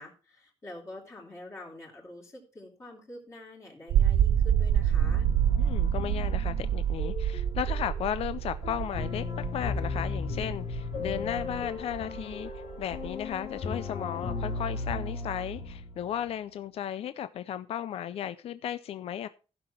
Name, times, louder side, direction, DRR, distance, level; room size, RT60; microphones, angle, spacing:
voice 1, 0.0-5.3, left 1 dB, 25° left, 3.3 m, -46 dB
sound 1, 3.9-14.0, right 10 dB, 75° right, 0.5 m, -28 dB
sound 2, 4.2-16.3, left 4 dB, 80° left, 3.1 m, -36 dB
voice 2, 5.6-12.5 12.8-19.3, left 10 dB, 60° left, 0.5 m, -35 dB
15.0 x 5.9 x 4.4 m
cardioid pair, 150°, 11 cm